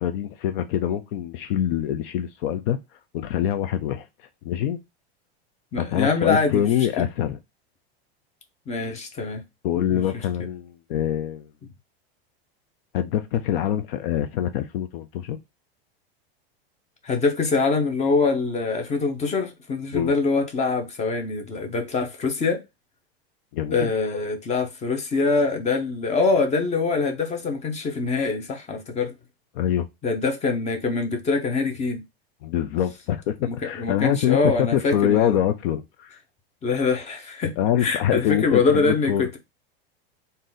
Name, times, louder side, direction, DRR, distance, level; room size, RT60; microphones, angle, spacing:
voice 1, 0.0-2.8 3.1-4.1 4.4-4.8 5.8-7.4 9.6-11.5 12.9-15.4 19.9-20.1 23.5-23.9 29.5-29.9 32.4-36.2 37.6-39.2, left 10 dB, 60° left, 0.5 m, -24 dB
voice 2, 5.7-7.1 8.7-9.4 9.7-10.0 17.0-22.6 23.7-29.1 30.0-32.0 33.4-35.4 36.6-37.5 37.8-39.4, left 4 dB, 20° left, 0.9 m, -24 dB
3.7 x 2.7 x 3.9 m
supercardioid pair, 125°, 31 cm